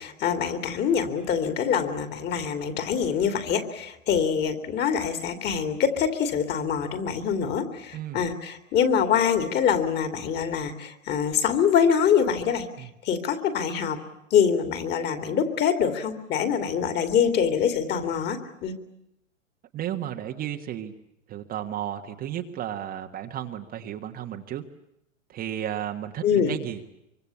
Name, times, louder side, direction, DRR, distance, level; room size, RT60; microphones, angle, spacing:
voice 1, 0.0-14.0 14.3-18.7 26.2-26.5, left 7 dB, 25° left, 9 dB, 2.9 m, -25 dB
voice 2, 19.7-20.9 21.3-24.6 25.3-26.8, right 11 dB, 20° right, 4 dB, 1.4 m, -33 dB
25.0 x 24.0 x 8.6 m, 0.84 s
hypercardioid pair, 140°, 40 cm